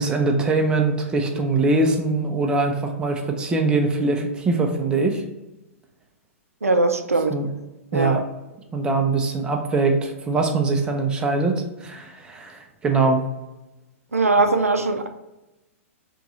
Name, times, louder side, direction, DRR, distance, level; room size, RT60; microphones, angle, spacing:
voice 1, 0.0-5.2 7.3-7.5 7.9-8.2 8.7-13.2, right 3 dB, 10° right, 3 dB, 0.5 m, -22 dB
voice 2, 6.6-7.4 7.9-8.2 14.1-15.1, right 3 dB, 80° right, 7 dB, 0.4 m, -20 dB
3.5 x 3.0 x 3.9 m, 1.0 s
figure-of-eight pair, 110°, 8 cm